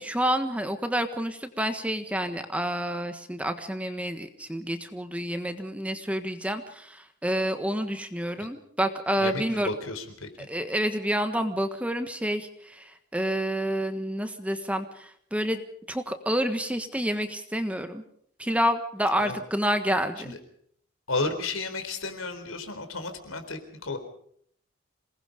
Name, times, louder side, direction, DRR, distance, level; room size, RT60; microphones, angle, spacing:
voice 1, 0.0-9.7 10.5-15.6 15.9-18.0 18.4-20.4, equal, 5° right, 8 dB, 1.4 m, -29 dB
voice 2, 9.2-10.5 19.2-19.4 20.2-20.4 21.1-24.0, left 3 dB, 80° left, 7 dB, 4.0 m, -33 dB
27.5 x 19.5 x 5.2 m, 0.65 s
head